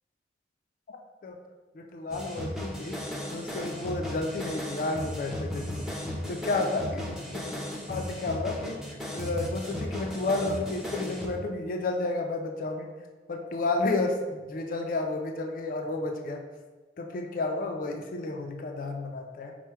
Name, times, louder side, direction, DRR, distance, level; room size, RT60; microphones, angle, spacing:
voice 1, 1.7-3.0 3.3-5.8 6.3-7.5 7.9-12.9 13.3-16.4 17.0-19.5, left 2 dB, 50° left, 3 dB, 0.4 m, -31 dB
sound 1, 2.1-11.3, left 1 dB, ahead, 0.5 m, -36 dB
4.5 x 2.1 x 4.4 m, 1.3 s
head